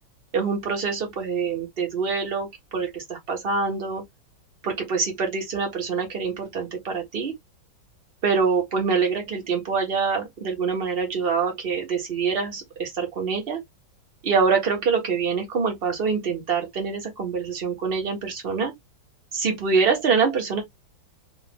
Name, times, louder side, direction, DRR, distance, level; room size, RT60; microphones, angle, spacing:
voice 1, 0.3-4.0 4.6-7.3 8.2-13.6 14.2-18.7 19.3-20.6, right 5 dB, 35° right, 1.2 m, -25 dB
3.7 x 2.6 x 3.5 m
omnidirectional pair, 2.2 m